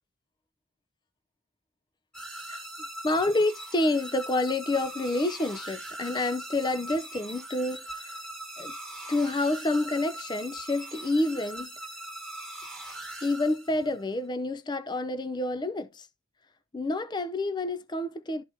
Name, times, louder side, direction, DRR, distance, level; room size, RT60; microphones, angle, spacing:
sound 1, 2.1-14.0, right 1 dB, 5° left, 1.3 m, -41 dB
voice 1, 3.0-8.2 8.6-8.7 9.1-11.7 13.2-16.1 16.7-18.4, left 2 dB, 20° left, 0.4 m, -28 dB
12.5 x 4.2 x 2.6 m
head